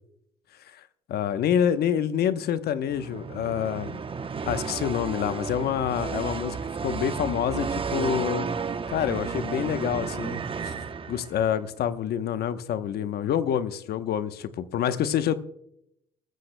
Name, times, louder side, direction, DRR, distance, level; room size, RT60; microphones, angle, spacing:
voice 1, 1.1-4.0 4.5-8.5 8.9-10.7 11.1-15.4, left 9 dB, 65° left, 11 dB, 0.9 m, -27 dB
sound 1, 2.9-11.5, right 5 dB, 30° right, 0.8 m, -32 dB
20.0 x 14.5 x 2.2 m, 0.77 s
supercardioid pair, 65°, 18 cm